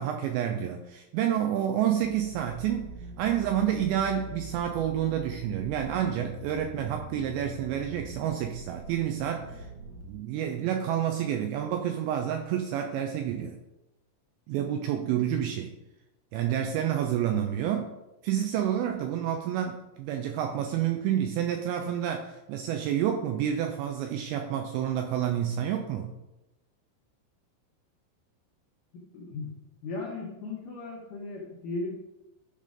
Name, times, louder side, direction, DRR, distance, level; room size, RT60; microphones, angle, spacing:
voice 1, 0.0-9.7 10.0-13.6 14.5-15.7 16.3-17.9 18.2-26.1, right 10 dB, 90° right, 4 dB, 2.6 m, -29 dB
sound 1, 2.0-10.0, right 2 dB, 75° right, 1.9 m, -43 dB
voice 2, 28.9-29.5 29.8-31.9, left 3 dB, 90° left, -3 dB, 1.8 m, -36 dB
12.0 x 5.2 x 3.7 m, 0.96 s
omnidirectional pair, 5.7 m